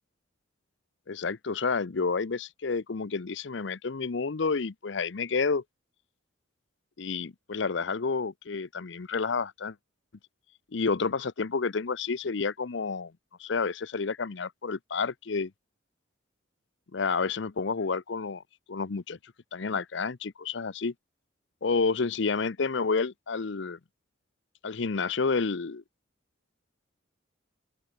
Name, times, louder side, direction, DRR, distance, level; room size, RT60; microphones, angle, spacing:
voice 1, 1.1-5.6 7.0-9.7 10.7-13.1 13.4-15.5 16.9-18.4 18.7-19.2 19.5-20.9 21.6-23.8 24.6-25.8, left 4 dB, 65° left, 0.6 m, -30 dB
open air
head